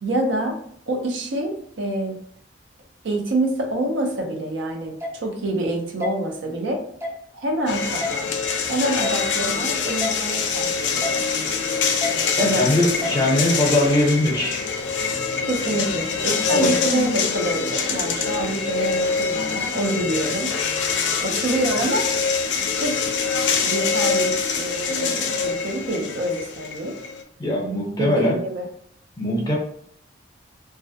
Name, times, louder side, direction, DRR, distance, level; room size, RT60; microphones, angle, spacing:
voice 1, 0.0-0.6 0.9-2.2 3.0-6.9 7.3-8.3 8.7-11.3 12.4-12.7 13.0-13.2 15.4-20.6 21.2-22.1 22.7-23.1 23.4-27.0 28.0-28.7, right 1 dB, 75° right, 3 dB, 0.5 m, -26 dB
sound 1, 5.0-5.1 6.0-6.1 7.0-7.2 8.0-8.1 9.0-9.2 10.0-10.1 11.0-11.2 12.0-12.1 13.0-13.2, left 2 dB, 15° right, 0.4 m, -28 dB
sound 2, 7.7-27.2, left 5 dB, 70° left, 0.3 m, -24 dB
voice 2, 12.4-14.6 16.5-16.7 27.4-28.4 29.2-29.6, left 1 dB, 20° left, -3 dB, 0.6 m, -21 dB
2.3 x 2.1 x 2.6 m, 0.66 s
head